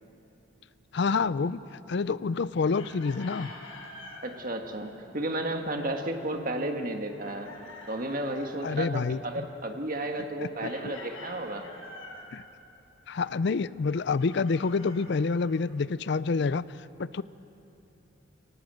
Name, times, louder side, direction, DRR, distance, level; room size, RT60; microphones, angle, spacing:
voice 1, 0.9-1.6 1.9-3.5 8.6-9.5 10.6-10.9 12.3-12.4 13.1-16.6 17.0-17.2, left 4 dB, 55° left, 18 dB, 0.4 m, -28 dB
Chicken rooster, 2.7-4.2 7.2-8.6 10.7-12.3 14.2-15.7, left 2 dB, 85° left, 4.2 m, -46 dB
voice 2, 4.2-7.5 7.9-11.7, right 1 dB, 40° right, 4 dB, 1.6 m, -33 dB
24.0 x 19.0 x 7.7 m, 2.9 s
head